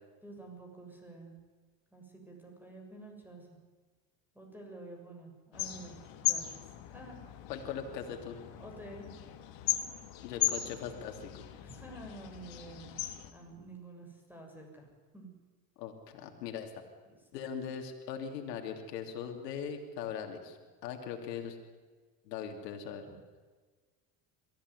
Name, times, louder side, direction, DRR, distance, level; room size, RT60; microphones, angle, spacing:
voice 1, 0.2-1.4 1.9-3.6 4.3-7.2 8.6-9.4 11.6-13.0 13.3-14.9 15.1-15.3 17.1-17.2 23.1-23.2, right 2 dB, 5° right, 2 dB, 7.2 m, -49 dB
sound 1, 5.5-13.3, left 13 dB, 65° left, 2.7 m, -37 dB
voice 2, 7.5-8.4 10.2-11.4 15.8-16.7 17.3-20.6 20.8-21.6 22.2-23.0, left 7 dB, 90° left, 4 dB, 3.0 m, -40 dB
23.0 x 15.0 x 9.8 m, 1.4 s
supercardioid pair, 85°, 48 cm